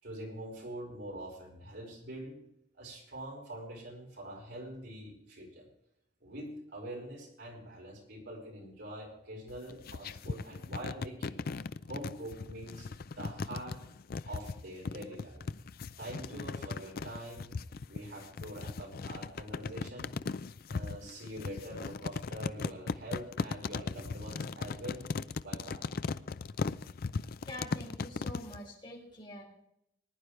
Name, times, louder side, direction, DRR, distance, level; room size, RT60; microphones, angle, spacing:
voice 1, 0.0-2.4 2.7-5.7 6.2-11.5 11.9-13.8 14.2-15.4 16.0-17.5 17.9-20.1 20.7-25.1 25.4-25.9, right 1 dB, 65° right, 0 dB, 5.3 m, -44 dB
sound 1, 9.5-28.6, left 4 dB, 55° left, 0.4 m, -38 dB
voice 2, 27.1-29.4, left 1 dB, 25° left, -3 dB, 4.2 m, -46 dB
19.5 x 10.5 x 3.2 m, 0.78 s
head